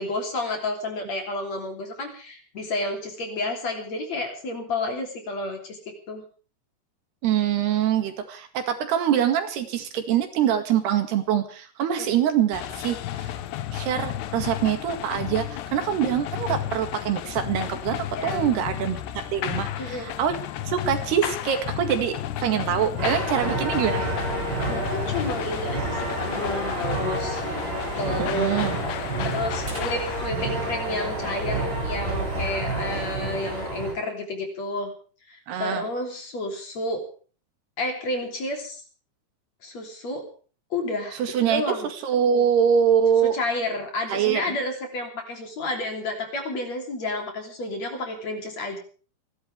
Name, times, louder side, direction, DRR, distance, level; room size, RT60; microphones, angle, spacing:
voice 1, 0.0-6.2 12.0-12.2 18.2-18.5 19.8-20.2 24.7-27.4 28.0-28.7 29.2-34.9 35.3-37.1 37.8-38.8 39.6-40.3 40.7-41.2 41.5-41.9 43.3-48.8, left 2 dB, 45° left, 3 dB, 4.3 m, -30 dB
voice 2, 7.2-13.3 13.7-19.0 19.3-20.4 20.7-24.1 28.2-28.8 35.5-35.9 41.2-41.6 42.0-43.3 44.1-44.6, right 9 dB, 80° right, 7 dB, 4.1 m, -24 dB
sound 1, 12.5-30.3, left 12 dB, 90° left, 3.3 m, -33 dB
sound 2, 23.0-33.9, right 1 dB, 25° right, 7.8 m, -29 dB
28.5 x 12.0 x 3.5 m, 0.40 s
omnidirectional pair, 4.7 m